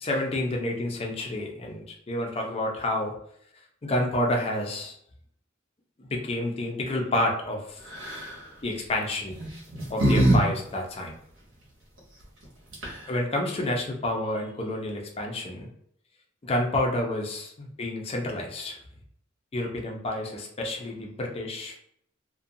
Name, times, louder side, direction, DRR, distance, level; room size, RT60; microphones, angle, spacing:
voice 1, 0.0-3.1 3.8-4.9 6.0-7.8 8.6-9.4 9.9-11.1 13.1-15.7 16.4-18.8 19.5-21.8, left 1 dB, 30° left, 0 dB, 0.5 m, -29 dB
sound 1, 7.9-8.3 9.3-10.4 10.7-10.8 12.4-12.5 12.7-13.2, right 1 dB, 70° right, 0.9 m, -23 dB
2.5 x 2.2 x 2.6 m, 0.68 s
head